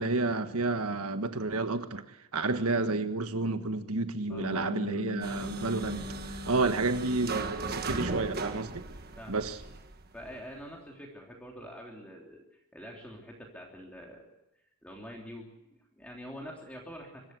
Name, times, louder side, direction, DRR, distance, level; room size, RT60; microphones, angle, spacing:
voice 1, 0.0-6.1 6.5-8.9 9.3-9.6, right 3 dB, 80° right, 1.5 m, -30 dB
Bass guitar, 4.3-8.6, left 2 dB, 70° left, 0.9 m, -41 dB
voice 2, 4.3-5.0 6.4-6.7 9.2-9.3 10.1-14.3 14.8-17.3, equal, 5° left, 3.1 m, -46 dB
sound 1, 5.2-10.4, right 3 dB, 45° right, 1.5 m, -37 dB
24.5 x 14.0 x 8.2 m
head